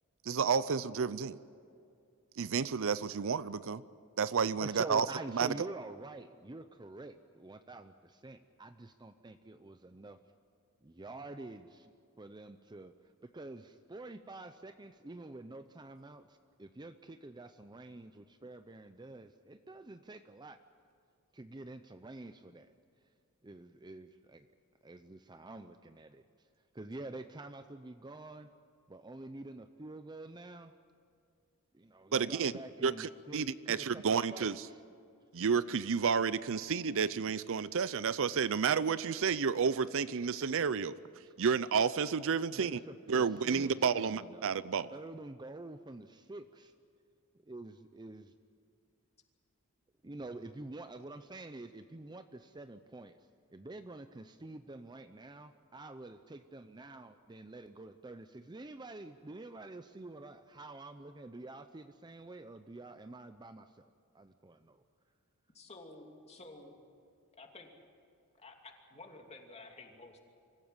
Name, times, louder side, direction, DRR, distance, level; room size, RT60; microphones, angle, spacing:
voice 1, 0.3-1.4 2.4-3.8 4.2-5.1 5.3-5.5 32.1-32.5 32.8-34.7 35.3-41.0 41.4-42.8 43.1-44.9, right 6 dB, 65° right, 17 dB, 0.6 m, -31 dB
voice 2, 4.6-10.2 10.8-20.6 21.3-22.7 23.4-24.5 24.8-26.2 26.7-28.5 28.9-30.7 31.7-34.0 34.3-34.8 41.2-41.3 42.5-44.6 44.9-46.7 47.5-48.3 50.0-63.9 64.1-64.8, right 2 dB, 20° right, 9 dB, 0.6 m, -48 dB
voice 3, 65.5-66.8 67.4-67.8 68.4-70.2, left 2 dB, 30° left, 2 dB, 2.7 m, -52 dB
25.5 x 15.5 x 9.7 m, 2.4 s
head